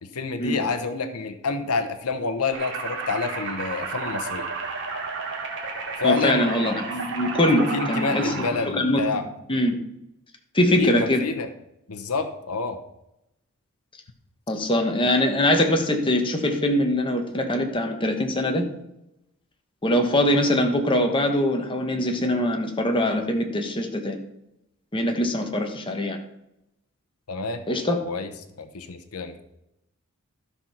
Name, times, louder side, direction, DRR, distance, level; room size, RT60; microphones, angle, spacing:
voice 1, 0.0-4.5 6.0-6.4 7.5-9.2 10.8-11.5 11.9-12.8 27.3-27.6 28.0-28.3 28.6-29.4, left 4 dB, 80° left, 8 dB, 1.0 m, -28 dB
sound 1, 2.5-8.5, right 4 dB, 55° right, 2.4 m, -32 dB
voice 2, 6.0-9.1 9.5-9.8 10.5-11.2 14.5-18.7 19.8-24.2 24.9-26.2 27.7-28.0, left 1 dB, 25° left, 3 dB, 1.4 m, -23 dB
13.0 x 5.6 x 5.9 m, 0.86 s
head